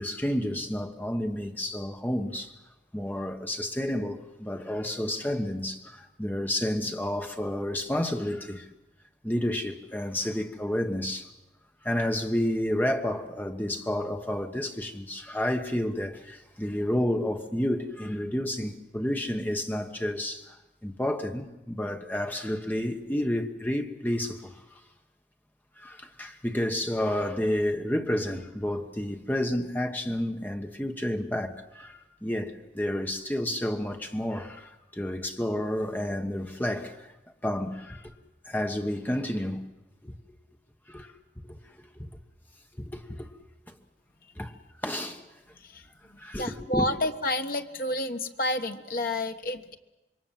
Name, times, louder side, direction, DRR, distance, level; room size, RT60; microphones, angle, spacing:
voice 1, 0.0-2.5 2.9-8.7 9.2-11.3 11.8-24.6 25.8-37.1 37.4-38.1 38.4-39.7 40.0-40.4 40.9-41.1 41.4-42.1 42.7-43.3 43.7-43.8 44.4-44.5 44.8-45.3 46.2-46.9, left 1 dB, 10° left, 1.2 m, -30 dB
voice 2, 45.5-49.8, left 1 dB, 50° left, 1.3 m, -30 dB
26.5 x 22.5 x 7.5 m
head